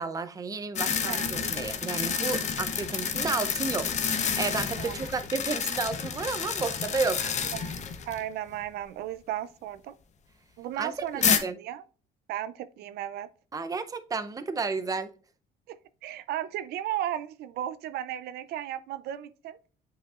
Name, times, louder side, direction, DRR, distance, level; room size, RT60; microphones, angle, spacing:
voice 1, 0.0-7.3 10.8-11.6 13.5-15.1, right 4 dB, 20° right, 0.6 m, -32 dB
sound 1, 0.7-8.2 8.5-8.6 11.2-11.4, left 6 dB, 45° left, 0.8 m, -29 dB
voice 2, 1.0-1.5 4.8-4.9 7.5-7.8 8.1-9.9 10.6-11.8 12.3-13.3 15.7-19.6, right 12 dB, 70° right, 0.4 m, -35 dB
8.0 x 4.9 x 2.4 m
cardioid pair, 110°, 17 cm